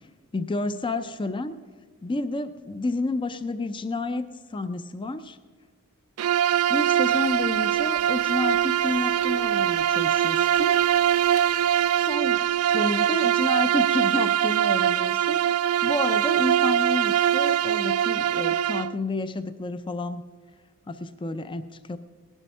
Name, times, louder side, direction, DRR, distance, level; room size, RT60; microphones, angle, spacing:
voice 1, 0.3-1.6 2.0-5.4 6.7-10.8 12.0-12.4 12.7-20.2 20.9-22.0, left 2 dB, 20° left, 12 dB, 0.5 m, -30 dB
Bowed string instrument, 6.2-19.0, right 11 dB, 70° right, 0.3 m, -22 dB
sound 1, 7.0-12.8, left 3 dB, 60° left, 2.3 m, -46 dB
18.5 x 11.5 x 5.5 m, 1.5 s
head